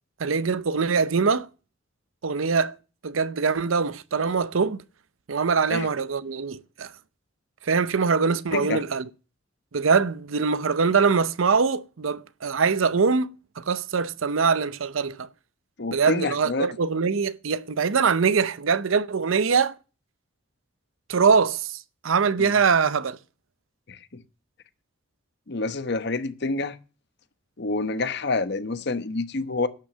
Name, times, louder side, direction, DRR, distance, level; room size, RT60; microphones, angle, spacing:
voice 1, 0.2-1.5 2.2-2.8 3.0-4.8 5.3-6.9 7.6-9.0 9.7-13.3 13.6-15.3 15.9-19.7 21.1-23.2, right 5 dB, 85° right, 0.7 m, -23 dB
voice 2, 8.5-8.8 15.8-16.7 22.4-22.5 23.9-24.2 25.5-26.8 27.6-29.7, left 3 dB, 55° left, 1.0 m, -28 dB
11.5 x 6.3 x 7.3 m
head